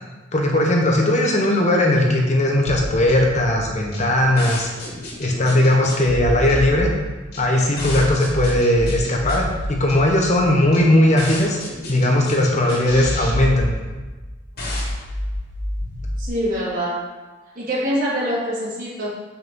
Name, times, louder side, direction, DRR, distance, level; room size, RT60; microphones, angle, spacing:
voice 1, 0.3-4.7 5.2-6.9 7.4-11.6 11.9-13.7, left 1 dB, 40° left, 0 dB, 1.2 m, -18 dB
sound 1, 2.7-16.3, left 1 dB, 55° left, 2.7 m, -29 dB
voice 2, 16.2-17.1 17.5-19.1, equal, 45° right, -7 dB, 3.3 m, -25 dB
8.4 x 5.9 x 5.5 m, 1.2 s
head